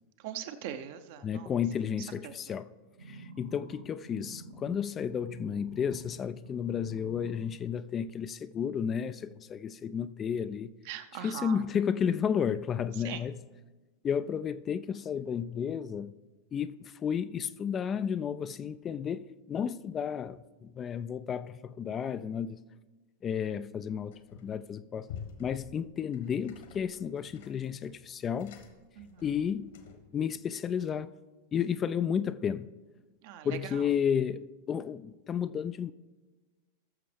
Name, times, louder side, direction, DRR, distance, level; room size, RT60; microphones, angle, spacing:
voice 1, 0.2-1.5 2.2-2.6 10.8-11.6 13.0-13.2 29.0-29.2 33.2-33.9, right 10 dB, 50° right, 0.7 m, -41 dB
voice 2, 1.2-2.7 3.1-10.7 11.1-13.3 14.0-16.1 16.5-22.6 23.2-25.1 25.4-28.6 29.2-29.7 30.1-31.1 31.5-32.7 33.4-35.9, left 7 dB, 25° left, 0.3 m, -32 dB
sound 1, 3.0-6.1 6.4-7.4 8.0-8.1, right 2 dB, 80° right, 4.0 m, -48 dB
sound 2, 24.1-24.6 25.0-30.2, left 7 dB, 60° left, 1.4 m, -49 dB
19.5 x 6.7 x 3.4 m
figure-of-eight pair, 90°, 0 cm